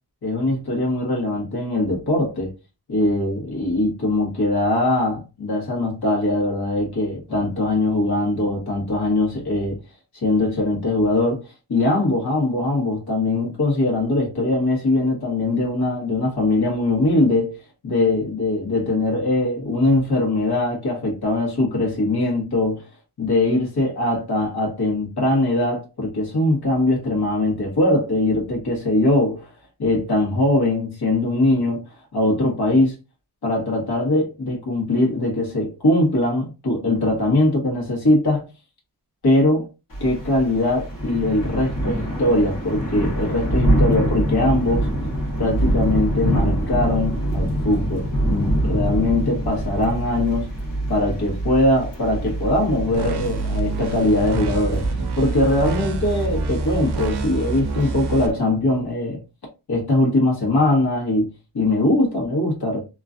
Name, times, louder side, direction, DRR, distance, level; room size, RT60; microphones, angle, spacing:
voice 1, 0.2-2.5 2.9-9.8 10.1-11.4 11.7-17.6 17.8-22.9 23.2-29.5 29.8-31.8 32.1-33.0 33.4-38.5 39.2-39.7 40.0-44.9 45.4-50.5 50.9-54.8 55.1-59.2 59.7-61.3 61.5-62.8, left 2 dB, 70° left, 1.5 m, -21 dB
Thunder / Rain, 39.9-58.3, right 1 dB, 55° left, 1.4 m, -25 dB
sound 1, 52.9-58.3, right 4 dB, 80° right, 0.6 m, -28 dB
2.9 x 2.5 x 2.5 m
wide cardioid pair, 130°, 39 cm